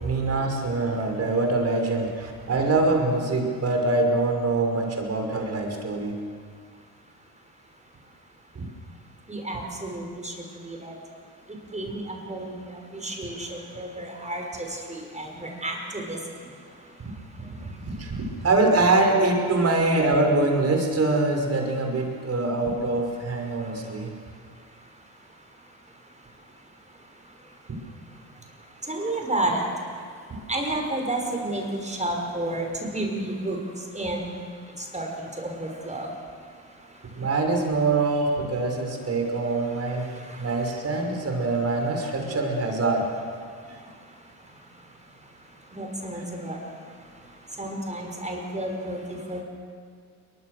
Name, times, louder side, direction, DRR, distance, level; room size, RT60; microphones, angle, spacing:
voice 1, 0.0-6.2 8.5-8.6 17.5-17.6 17.8-24.1 27.7-27.8 37.2-40.1 40.4-43.1, right 2 dB, 35° right, 2 dB, 5.9 m, -24 dB
voice 2, 9.3-10.3 10.6-10.9 11.7-16.2 28.9-29.6 30.5-33.6 33.9-34.2 34.8-36.1 40.2-40.4 45.7-46.6 47.6-49.4, right 1 dB, 15° right, 1 dB, 5.8 m, -31 dB
29.5 x 23.0 x 6.7 m, 2.1 s
figure-of-eight pair, 50°, 45 cm